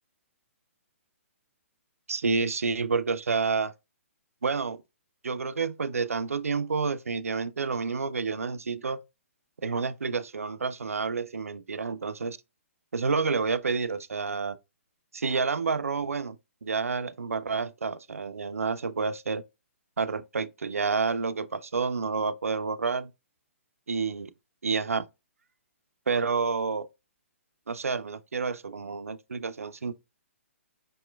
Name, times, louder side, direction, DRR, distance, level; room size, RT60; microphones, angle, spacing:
voice 1, 2.1-3.7 4.4-4.8 5.2-9.0 9.6-12.4 12.9-14.6 15.1-16.4 16.6-19.4 20.0-23.1 23.9-24.3 24.6-25.1 26.1-26.9 27.7-29.9, right 4 dB, 85° right, 0.4 m, -29 dB
5.3 x 3.0 x 2.2 m
hypercardioid pair, 135°, 7 cm